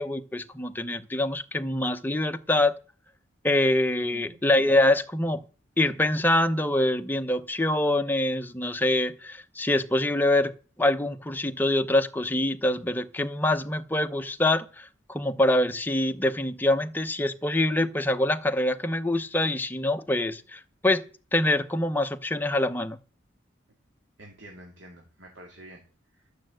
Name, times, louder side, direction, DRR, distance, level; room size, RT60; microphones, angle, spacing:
voice 1, 0.0-2.7 3.4-5.4 5.8-10.5 10.8-21.0 21.3-23.0, left 1 dB, 10° left, 0.7 m, -25 dB
voice 2, 4.0-4.3 24.2-25.8 26.1-26.3, right 1 dB, 80° right, 2.7 m, -48 dB
12.5 x 6.5 x 7.8 m
head